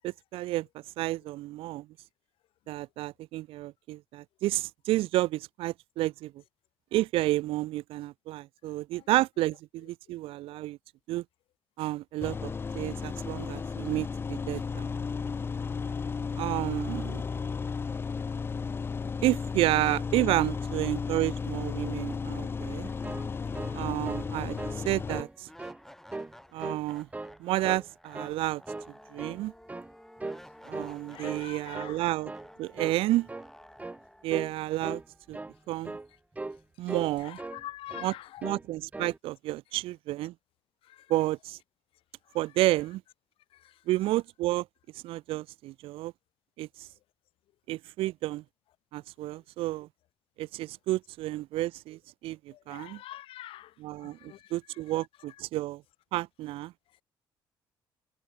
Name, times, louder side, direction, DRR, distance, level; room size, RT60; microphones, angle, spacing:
voice 1, 0.0-0.7 1.0-1.9 2.7-6.3 6.9-10.8 11.1-11.2 11.8-14.9 16.4-17.2 19.2-22.9 23.7-25.5 26.5-27.1 27.4-28.6 29.1-29.5 30.7-32.3 32.6-33.3 34.2-35.0 35.3-35.4 35.7-36.0 36.8-37.4 38.0-38.1 38.4-40.3 41.1-41.6 42.3-43.0 43.9-44.7 45.0-46.1 46.6-46.9 47.7-48.4 48.9-49.9 50.4-53.0 53.8-55.8 56.1-56.7, right 17 dB, 85° right, 0.4 m, -30 dB
sound 1, 12.2-25.2, left 5 dB, 25° left, 0.3 m, -34 dB
voice 2, 15.6-16.0 16.3-16.8 31.1-32.0 37.2-38.5 40.9-41.1 43.5-43.7 52.5-54.5, left 14 dB, 80° left, 0.8 m, -46 dB
sound 2, 22.4-22.5 22.9-35.9, left 1 dB, 5° left, 1.9 m, -54 dB
sound 3, 23.0-24.3 24.6-24.8 25.1-25.8 26.1-26.9 27.1-27.9 28.1-28.4 28.7-29.4 29.7-29.9 30.2-30.5 30.7-31.5 31.7-32.0 32.3-32.5 32.8-33.0 33.3-33.5 33.8-34.0 34.3-34.6 34.8-35.1 35.3-35.6 35.8-36.1 36.4-36.6 36.9-37.6 37.9-38.1 38.4-38.7 38.9-39.2, right 2 dB, 15° right, 1.2 m, -39 dB
cardioid pair, 95°, 9 cm